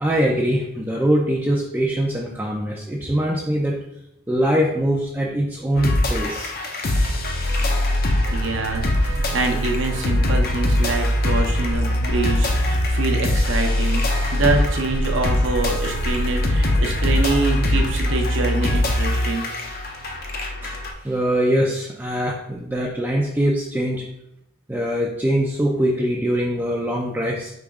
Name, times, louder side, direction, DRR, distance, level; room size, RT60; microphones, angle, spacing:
voice 1, 0.0-3.8 4.3-6.5 20.6-20.8 21.0-24.0 24.7-27.5, equal, 10° right, -2 dB, 0.4 m, -22 dB
sound 1, 5.8-20.9, left 1 dB, 45° left, 0.6 m, -22 dB
voice 2, 8.3-19.5, right 3 dB, 65° right, 2 dB, 0.8 m, -25 dB
4.9 x 3.0 x 3.5 m, 0.81 s
head